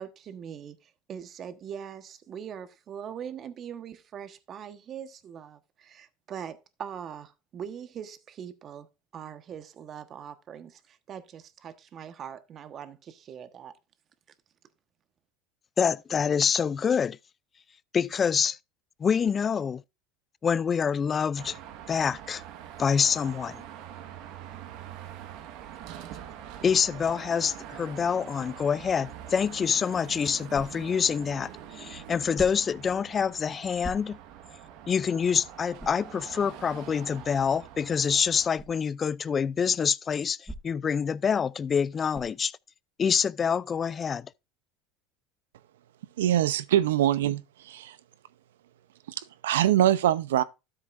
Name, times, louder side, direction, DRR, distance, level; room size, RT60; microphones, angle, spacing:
voice 1, 0.0-13.7, right 8 dB, 40° right, 1.3 m, -42 dB
voice 2, 15.8-17.2 17.9-18.6 19.0-19.8 20.4-21.6 21.9-22.4 22.8-23.6 26.6-34.2 34.9-42.5 43.0-44.3, left 6 dB, 30° left, 0.4 m, -26 dB
Car passing by / Traffic noise roadway noise / Engine, 21.4-38.5, right 10 dB, 65° right, 1.4 m, -44 dB
sound 1, 32.3-32.8 33.8-34.4 34.9-35.0 35.8-36.1 38.5-38.8 40.4-41.0 42.1-42.5, right 1 dB, ahead, 1.7 m, -42 dB
voice 3, 46.2-48.0 49.1-50.4, right 12 dB, 90° right, 0.7 m, -24 dB
13.0 x 7.4 x 2.6 m
supercardioid pair, 95°, 0 cm